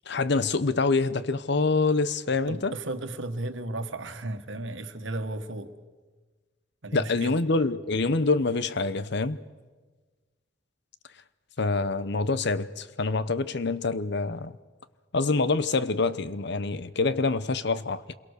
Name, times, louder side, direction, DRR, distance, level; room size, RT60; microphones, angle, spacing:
voice 1, 0.1-2.7 6.9-9.4 11.6-14.6 15.1-18.1, left 3 dB, 65° left, 0.9 m, -26 dB
voice 2, 2.5-5.7 6.8-7.3, right 2 dB, 85° right, 1.6 m, -34 dB
27.5 x 22.5 x 6.7 m
head